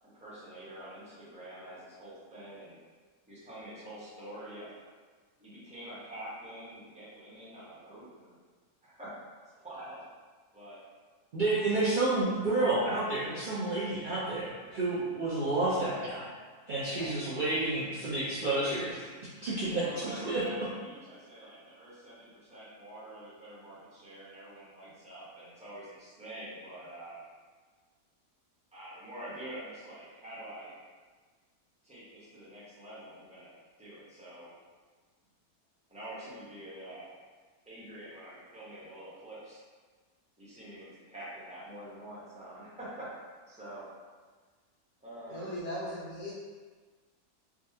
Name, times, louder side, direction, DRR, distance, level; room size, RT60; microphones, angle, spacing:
voice 1, 0.0-2.8 3.3-4.7 5.4-8.4 8.8-9.2 9.4-10.0 10.5-10.8 16.9-17.3 19.8-27.2 28.7-30.7 31.8-33.5 33.8-34.5 35.9-37.1 37.6-39.6 40.4-43.9 45.0-45.5, right 1 dB, 5° right, -10 dB, 0.7 m, -46 dB
voice 2, 11.3-16.3 16.7-19.1 19.4-20.4, right 2 dB, 75° right, -10 dB, 0.4 m, -30 dB
voice 3, 45.3-46.3, equal, 70° left, -9 dB, 1.4 m, -38 dB
3.5 x 2.4 x 2.7 m, 1.5 s
omnidirectional pair, 1.7 m